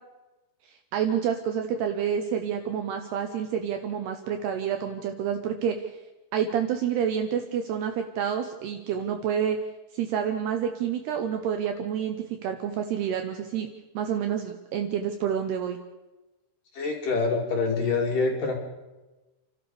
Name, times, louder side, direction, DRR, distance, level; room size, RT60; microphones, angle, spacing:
voice 1, 0.9-5.9 6.3-9.6 9.9-13.7 13.9-15.8, right 8 dB, 75° right, 5 dB, 2.6 m, -28 dB
voice 2, 16.7-18.6, left 4 dB, 50° left, 1 dB, 3.4 m, -26 dB
30.0 x 12.5 x 6.9 m, 1.1 s
omnidirectional pair, 5.7 m